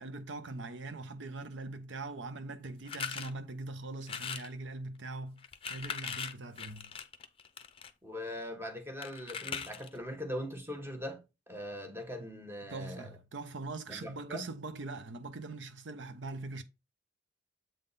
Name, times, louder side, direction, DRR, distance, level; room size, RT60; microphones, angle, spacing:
voice 1, 0.0-5.4 5.7-6.9 12.7-16.6, right 3 dB, 80° right, 0.7 m, -42 dB
sound 1, 2.9-3.3 4.0-4.5 5.4-7.9 9.0-10.0, left 6 dB, 30° left, 0.6 m, -40 dB
voice 2, 8.0-13.2 13.9-14.5, equal, 15° right, 1.1 m, -41 dB
7.7 x 3.7 x 4.0 m
head